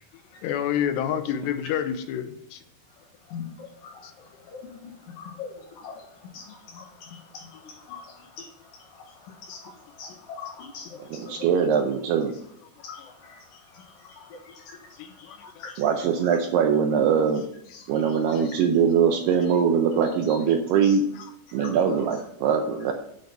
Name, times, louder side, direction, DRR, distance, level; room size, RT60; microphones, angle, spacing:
voice 1, 0.4-2.6 4.0-4.1 15.0-15.4 18.3-18.4, left 9 dB, 80° left, 8 dB, 2.8 m, -28 dB
voice 2, 3.0-11.5 12.8-15.8 16.2-16.4 17.7-18.6 20.3-20.4 20.8-21.7, left 5 dB, 65° left, 1 dB, 2.6 m, -44 dB
voice 3, 11.0-12.3 15.8-17.4 17.9-21.0 21.5-22.9, right 7 dB, 80° right, 4 dB, 2.6 m, -22 dB
9.0 x 5.6 x 6.0 m, 0.73 s
omnidirectional pair, 5.0 m